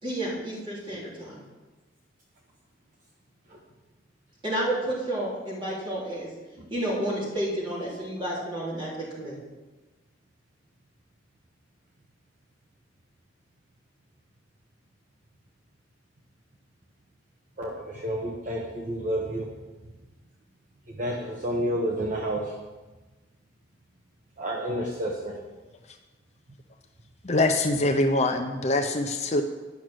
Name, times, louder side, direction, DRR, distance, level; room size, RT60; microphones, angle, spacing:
voice 1, 0.0-1.4 4.4-6.3 6.7-9.4, right 1 dB, 25° right, -7 dB, 3.6 m, -31 dB
voice 2, 17.6-19.5 20.9-22.6 24.4-25.4, right 1 dB, 45° right, -1 dB, 1.0 m, -30 dB
voice 3, 27.2-29.4, left 2 dB, 35° left, 5 dB, 0.6 m, -24 dB
10.5 x 6.3 x 6.3 m, 1.2 s
head